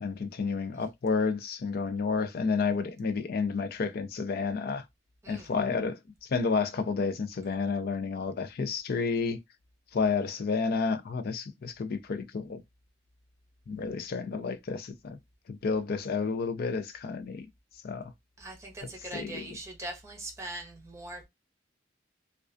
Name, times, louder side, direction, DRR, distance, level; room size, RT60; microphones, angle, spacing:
voice 1, 0.0-4.8 5.3-9.4 9.9-12.6 13.7-15.2 15.5-17.4 17.8-18.1 19.1-19.6, left 4 dB, 50° left, 0.4 m, -30 dB
voice 2, 5.2-5.5 18.4-21.2, right 1 dB, 15° right, 0.7 m, -41 dB
2.3 x 2.2 x 2.4 m
head